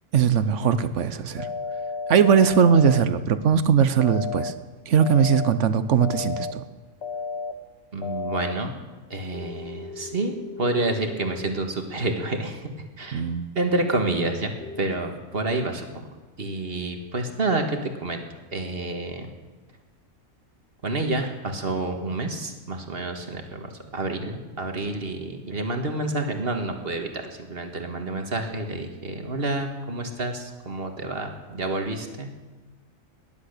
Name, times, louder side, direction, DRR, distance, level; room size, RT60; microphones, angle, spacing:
voice 1, 0.1-1.5 2.1-4.5 4.9-6.6 13.1-13.5, right 7 dB, 65° right, 13 dB, 1.1 m, -20 dB
sound 1, 1.4-3.0 4.0-4.5 5.0-5.5 6.0-6.5 7.0-7.5 8.0-8.5 9.3-11.6 14.6-14.8, left 4 dB, 55° left, 1.1 m, -33 dB
voice 2, 7.9-8.7 9.1-12.6 13.0-13.2 13.6-14.5 14.8-16.1 16.4-18.2 18.5-19.3 20.8-32.3, right 2 dB, 45° right, 5 dB, 1.7 m, -29 dB
18.0 x 11.0 x 6.7 m, 1.3 s
omnidirectional pair, 1.4 m